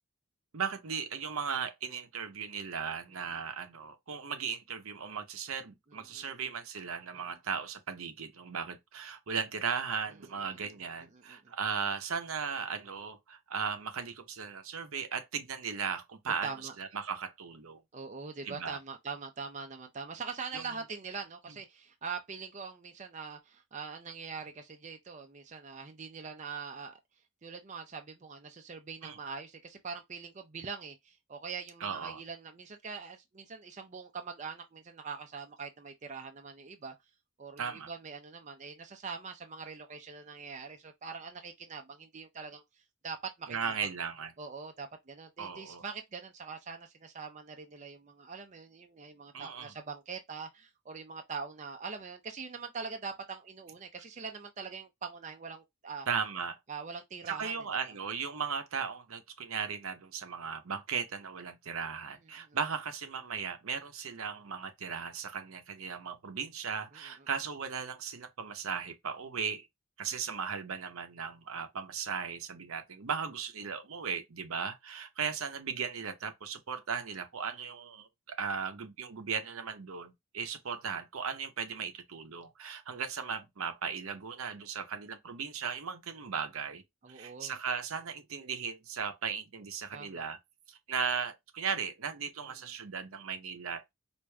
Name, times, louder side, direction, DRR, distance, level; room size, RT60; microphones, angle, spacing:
voice 1, 0.5-16.5 16.8-17.8 18.4-18.8 20.5-20.7 29.0-29.2 31.8-32.2 37.6-37.9 43.5-44.3 45.4-45.8 49.3-49.7 56.1-56.6 57.3-69.7 70.0-86.8 87.1-90.4 90.7-93.9, right 6 dB, 85° right, 0.7 m, -37 dB
voice 2, 11.1-11.5 16.3-16.8 17.9-27.0 27.4-36.9 37.4-43.7 44.4-56.1 56.7-57.7 62.1-62.6 66.9-67.3 87.0-87.6 89.9-90.2 92.6-92.7, right 5 dB, 35° right, 0.5 m, -43 dB
4.7 x 2.6 x 2.2 m
head